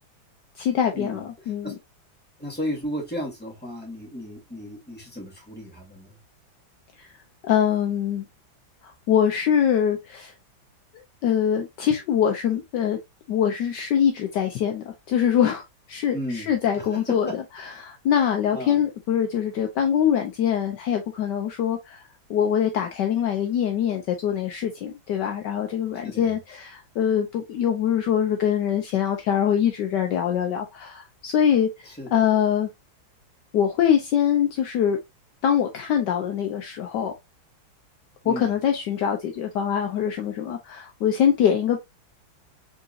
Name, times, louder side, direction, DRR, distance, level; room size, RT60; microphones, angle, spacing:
voice 1, 0.6-1.7 7.5-8.2 9.1-10.3 11.2-13.0 13.3-15.6 15.9-22.0 22.3-31.7 32.1-32.7 33.5-35.0 35.4-37.1 38.2-41.8, left 9 dB, 70° left, 1.2 m, -23 dB
voice 2, 2.4-6.2 16.1-16.5 16.8-17.4 18.5-18.8 26.0-26.3 32.0-32.2 38.2-38.5, equal, 5° left, 1.8 m, -34 dB
3.9 x 3.7 x 2.5 m
omnidirectional pair, 2.1 m